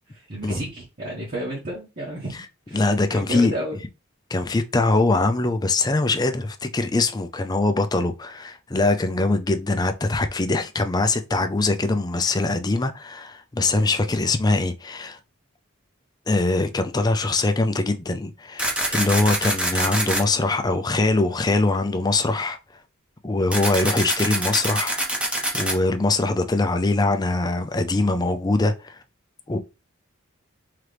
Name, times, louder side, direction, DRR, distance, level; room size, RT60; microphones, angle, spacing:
voice 1, 0.1-2.4 2.7-3.8 13.7-13.8, equal, 40° right, 1.2 m, -32 dB
voice 2, 2.7-3.6 4.3-15.2 16.3-22.6 23.2-25.0 25.5-29.0 29.5-29.6, left 2 dB, 20° left, 0.4 m, -22 dB
sound 1, 18.6-20.2 23.5-25.7, right 1 dB, 5° right, 0.9 m, -24 dB
3.8 x 3.1 x 3.3 m
head